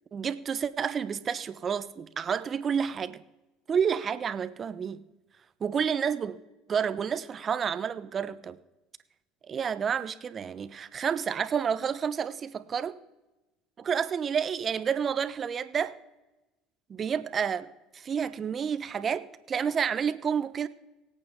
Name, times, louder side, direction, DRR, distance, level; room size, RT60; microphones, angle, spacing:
voice 1, 0.1-3.2 3.7-5.0 5.6-6.4 6.7-8.6 9.5-13.0 13.8-15.9 16.9-17.7 17.9-20.7, right 7 dB, 35° right, 0.9 m, -30 dB
24.0 x 8.6 x 3.7 m
supercardioid pair, 95°, 0 cm